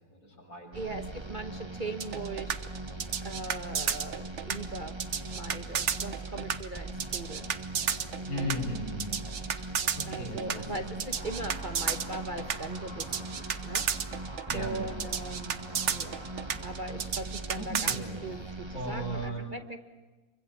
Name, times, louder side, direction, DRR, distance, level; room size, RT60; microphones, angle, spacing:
voice 1, 0.1-0.8 8.3-9.1 9.6-11.0 14.5-15.0 17.5-18.1 18.4-19.5, equal, 65° left, -1 dB, 7.6 m, -37 dB
sound 1, 0.7-19.3, right 2 dB, 20° right, 1.8 m, -41 dB
voice 2, 0.7-2.7 3.2-7.6 8.2-8.6 10.1-14.3 14.5-16.3 16.6-19.8, right 3 dB, 35° right, 7 dB, 1.2 m, -40 dB
sound 2, 2.0-18.0, right 7 dB, 55° right, 1.3 m, -32 dB
Truck, 11.1-16.9, equal, 80° right, 8.0 m, -49 dB
27.5 x 24.5 x 7.4 m, 1.3 s
omnidirectional pair, 1.6 m